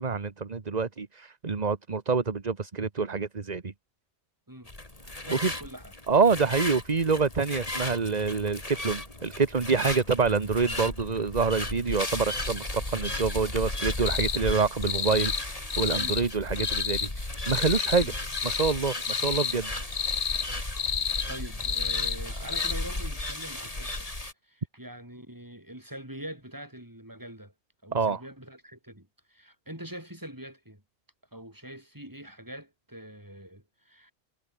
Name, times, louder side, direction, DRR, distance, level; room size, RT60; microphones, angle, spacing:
voice 1, 0.0-3.7 5.3-5.5 6.1-18.1 18.4-19.7 27.9-28.2, right 5 dB, 40° right, 1.4 m, -27 dB
sound 1, 4.7-24.3, left 2 dB, 35° left, 3.1 m, -35 dB
voice 2, 5.2-5.9 16.0-16.2 18.0-18.1 20.9-21.0 21.3-24.1 24.4-27.5 27.8-30.8 31.3-34.1, right 1 dB, 15° right, 5.1 m, -43 dB
sound 2, 14.1-14.4 14.8-15.4 15.7-16.2 16.6-17.1 17.5-18.1 18.3-18.7 19.0-19.6 19.9-20.5 20.8-21.3 21.6-22.2 22.5-22.7, left 7 dB, 65° left, 1.3 m, -30 dB
omnidirectional pair, 1.1 m